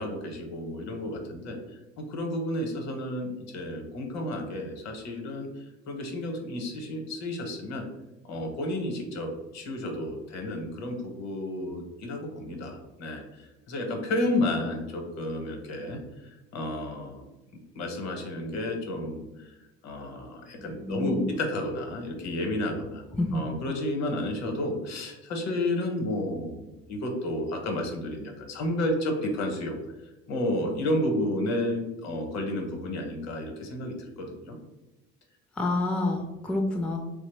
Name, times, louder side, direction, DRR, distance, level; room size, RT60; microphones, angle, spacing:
voice 1, 0.0-1.6 2.0-5.5 5.9-7.8 8.2-17.2 17.7-19.5 19.8-23.0 23.3-29.8 30.3-34.6, left 1 dB, 65° left, 3 dB, 0.8 m, -31 dB
voice 2, 20.8-21.2 23.1-23.5 35.6-37.0, left 2 dB, 5° left, 1 dB, 0.3 m, -28 dB
3.0 x 2.0 x 3.1 m, 0.99 s
cardioid pair, 100°, 29 cm